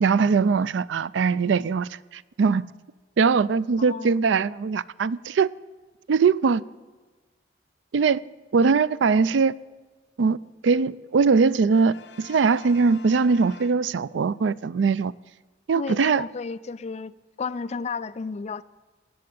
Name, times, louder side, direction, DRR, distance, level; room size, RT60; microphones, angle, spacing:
voice 1, 0.0-2.7 3.2-5.5 6.1-6.6 7.9-8.2 8.5-9.5 10.2-15.1 15.7-16.2, right 5 dB, 85° right, 0.4 m, -21 dB
voice 2, 3.8-4.2 15.7-18.6, left 4 dB, 40° left, 0.4 m, -33 dB
Brass instrument, 11.7-14.3, left 5 dB, 70° left, 1.3 m, -47 dB
18.5 x 7.7 x 8.5 m
head